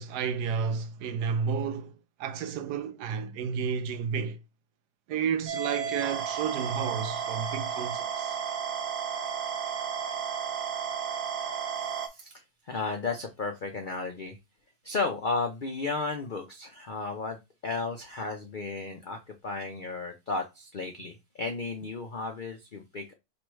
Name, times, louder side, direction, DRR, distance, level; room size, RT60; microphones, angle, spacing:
voice 1, 0.0-4.4 5.1-8.4, right 6 dB, 80° right, 1.1 m, -31 dB
sound 1, 5.5-12.1, right 7 dB, 55° right, 0.9 m, -33 dB
voice 2, 12.7-14.4 14.8-19.2 19.4-23.1, left 3 dB, 80° left, 0.4 m, -34 dB
3.1 x 3.0 x 4.6 m
omnidirectional pair, 1.8 m